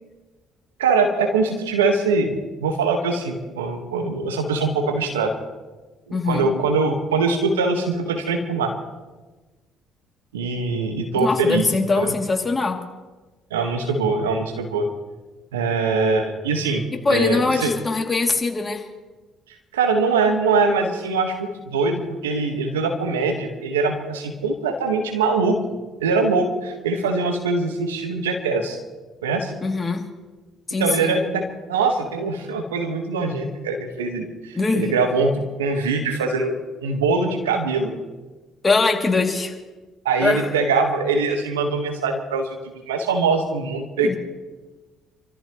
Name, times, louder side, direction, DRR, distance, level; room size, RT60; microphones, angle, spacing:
voice 1, 0.8-5.3 6.2-8.7 10.3-11.6 12.0-12.1 13.5-14.9 15.5-17.7 19.7-25.6 26.0-28.8 29.2-29.5 30.8-37.9 40.0-44.2, right 4 dB, 90° right, 4 dB, 1.6 m, -22 dB
voice 2, 6.1-6.5 11.1-12.8 17.0-18.9 29.6-30.0 30.7-31.2 34.5-34.9 38.6-39.6 40.2-40.5 44.0-44.2, left 3 dB, 25° left, 1 dB, 2.9 m, -22 dB
27.5 x 14.0 x 3.2 m, 1.2 s
hypercardioid pair, 50°, 0 cm